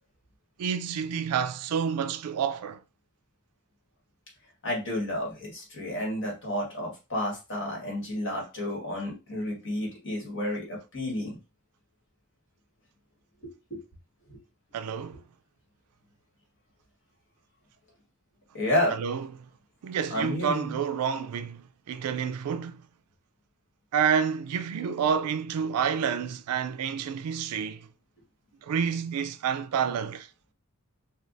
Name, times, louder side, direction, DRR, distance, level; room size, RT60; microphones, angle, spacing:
voice 1, 0.6-2.8 14.7-15.2 18.9-19.5 19.8-22.8 23.9-27.9 28.6-30.3, right 7 dB, 90° right, 0.3 m, -29 dB
voice 2, 4.6-11.4 13.4-13.8 14.3-14.4 18.5-18.9 20.1-20.8, left 1 dB, 55° left, 1.6 m, -31 dB
4.4 x 2.3 x 2.5 m
head